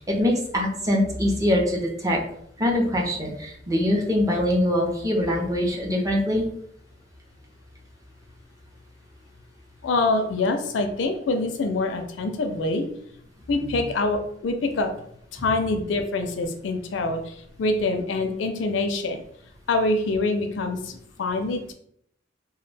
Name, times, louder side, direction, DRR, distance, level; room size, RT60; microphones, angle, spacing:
voice 1, 0.0-2.2 2.6-6.4 15.4-15.5, left 1 dB, 20° right, -1 dB, 0.5 m, -23 dB
voice 2, 9.8-12.8 13.5-14.9 15.3-19.2 19.7-21.7, left 2 dB, 80° left, 6 dB, 0.4 m, -25 dB
2.2 x 2.1 x 3.2 m, 0.69 s
head